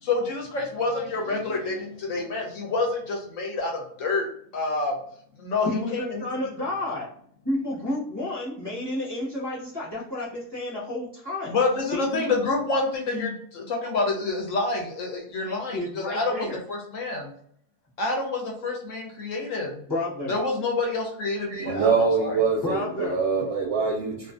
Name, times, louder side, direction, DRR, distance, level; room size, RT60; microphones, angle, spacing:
voice 1, 0.0-4.3 4.5-4.9 5.4-6.3 11.5-17.3 18.0-19.9 20.3-22.4, left 3 dB, 65° left, 1 dB, 0.9 m, -28 dB
voice 2, 5.6-7.1 7.4-11.6 11.9-12.2 13.1-13.2 15.4-16.6 19.9-20.3 22.6-23.2, left 2 dB, 25° left, -8 dB, 0.6 m, -31 dB
voice 3, 21.5-24.3, right 5 dB, 65° right, -2 dB, 0.8 m, -24 dB
2.4 x 2.4 x 2.4 m, 0.65 s
omnidirectional pair, 1.6 m